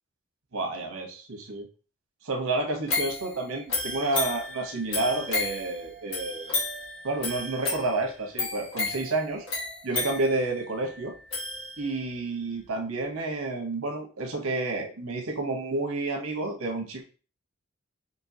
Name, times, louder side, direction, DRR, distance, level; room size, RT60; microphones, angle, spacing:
voice 1, 0.5-1.7 2.2-6.6 7.0-9.4 9.8-11.1 11.8-17.0, right 2 dB, 85° right, 2 dB, 1.1 m, -30 dB
sound 1, 2.9-12.1 12.6-12.7, left 3 dB, 70° left, 1.9 m, -33 dB
5.3 x 2.8 x 2.8 m, 0.36 s
head